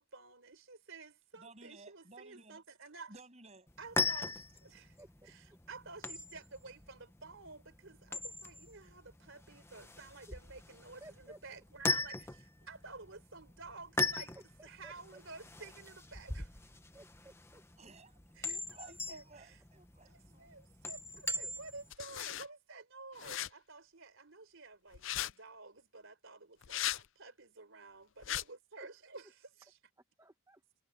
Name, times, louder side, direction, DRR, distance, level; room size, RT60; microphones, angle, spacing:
voice 1, 0.0-3.1 3.8-5.0 5.2-14.3 14.6-16.6 18.3-19.6 20.1-29.8, right 3 dB, 60° right, 4.0 m, -52 dB
voice 2, 1.3-2.6 3.1-3.7 17.8-20.5, right 3 dB, 30° right, 8.0 m, -56 dB
sound 1, 3.7-21.9, left 3 dB, 10° left, 1.0 m, -40 dB
voice 3, 5.0-5.3 10.3-10.4 11.0-11.4 12.1-12.2 14.3-14.9 16.9-17.6 21.4-21.5 28.3-28.4 28.8-28.9 30.2-30.6, right 1 dB, 15° right, 1.1 m, -56 dB
sound 2, 21.9-22.5 23.2-23.5 24.9-25.3 26.6-27.0 28.2-28.4, left 13 dB, 60° left, 0.5 m, -37 dB
head